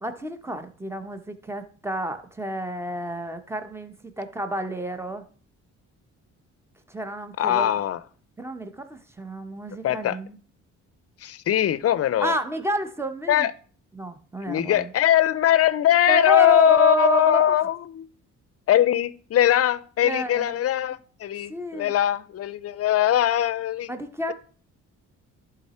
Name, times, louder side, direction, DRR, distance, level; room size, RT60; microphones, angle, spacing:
voice 1, 0.0-5.2 6.9-7.7 8.4-10.4 12.2-13.5 13.9-14.9 16.1-17.6 20.0-20.7 21.5-21.9 23.9-24.3, right 1 dB, 10° right, 8 dB, 1.0 m, -29 dB
voice 2, 7.4-8.0 9.8-10.2 11.2-12.4 13.3-13.5 14.5-18.1 18.7-23.9, left 12 dB, 50° left, 17 dB, 0.6 m, -21 dB
11.5 x 4.0 x 4.3 m, 0.43 s
cardioid pair, 90°, 30 cm